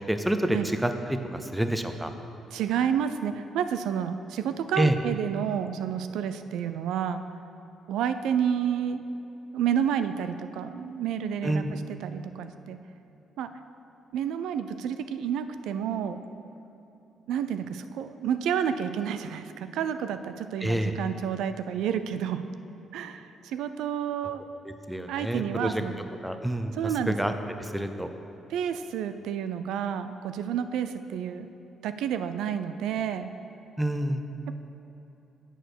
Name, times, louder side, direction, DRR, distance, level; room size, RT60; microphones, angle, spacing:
voice 1, 0.0-2.1 4.8-4.9 11.4-11.7 20.6-20.9 24.9-25.8 26.2-27.3 27.6-28.1 33.8-34.2, right 1 dB, 5° right, 7 dB, 0.6 m, -28 dB
voice 2, 2.5-7.2 7.9-9.0 9.5-12.8 13.4-13.5 14.1-16.2 17.3-22.4 22.9-24.4 25.1-26.0 26.7-27.2 28.5-31.5 31.8-33.3 34.5-34.6, right 8 dB, 85° right, 10 dB, 0.3 m, -30 dB
8.9 x 4.7 x 6.2 m, 3.0 s
cardioid pair, 90°, 0 cm